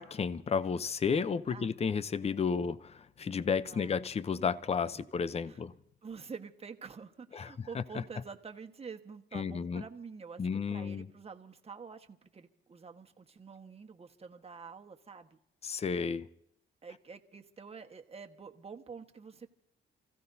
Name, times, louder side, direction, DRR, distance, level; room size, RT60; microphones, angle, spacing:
voice 1, 0.0-5.7 7.3-8.0 9.3-9.8 10.4-11.1 15.6-16.3, left 6 dB, 30° left, 0.7 m, -32 dB
voice 2, 6.0-15.4 16.8-19.5, right 5 dB, 30° right, 1.4 m, -48 dB
30.0 x 15.5 x 2.7 m
cardioid pair, 90°, 20 cm